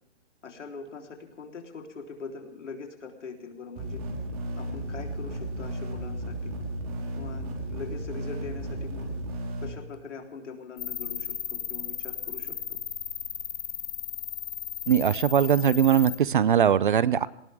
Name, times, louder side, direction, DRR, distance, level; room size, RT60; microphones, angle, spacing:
voice 1, 0.4-4.0 4.6-6.5 7.2-9.1 9.6-12.8, left 4 dB, 80° left, 2 dB, 3.8 m, -42 dB
sound 1, 3.8-9.7, right 1 dB, 30° right, 3.9 m, -34 dB
sound 2, 10.8-16.2, left 9 dB, 40° left, 1.9 m, -35 dB
voice 2, 14.9-17.3, right 8 dB, 45° right, 19 dB, 0.6 m, -21 dB
20.0 x 19.0 x 3.6 m, 0.86 s
hypercardioid pair, 170°, 35 cm